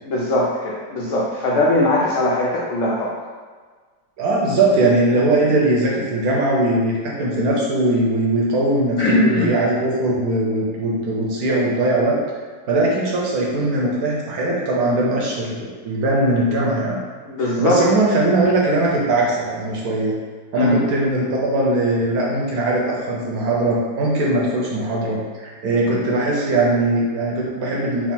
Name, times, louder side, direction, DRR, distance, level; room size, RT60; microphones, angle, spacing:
voice 1, 0.0-3.2 9.0-9.5 17.3-17.8 20.5-20.8, left 1 dB, 75° left, -5 dB, 0.7 m, -20 dB
voice 2, 4.2-12.2 12.7-17.0 17.4-20.2 20.5-28.1, right 2 dB, 70° right, -3 dB, 1.0 m, -20 dB
3.5 x 2.1 x 4.3 m, 1.5 s
omnidirectional pair, 1.9 m